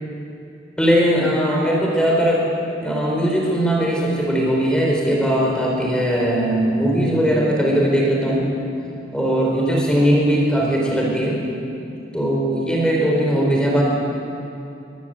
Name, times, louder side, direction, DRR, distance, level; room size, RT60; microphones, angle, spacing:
voice 1, 0.8-2.4 2.8-8.5 9.1-11.4 12.1-13.8, equal, 5° left, -3 dB, 4.6 m, -19 dB
23.5 x 19.0 x 8.1 m, 2.7 s
head